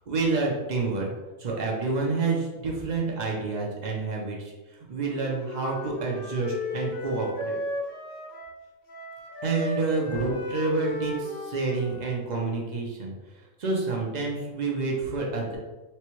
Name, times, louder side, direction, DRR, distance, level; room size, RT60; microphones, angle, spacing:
voice 1, 0.1-1.1 1.4-4.4 4.9-7.6 9.4-13.1 13.6-15.6, right 3 dB, 50° right, -2 dB, 0.5 m, -28 dB
Wind instrument woodwind instrument, 5.0-8.6 8.9-12.8, left 1 dB, 55° left, 0.7 m, -36 dB
4.2 x 2.2 x 3.0 m, 1.2 s
omnidirectional pair, 1.4 m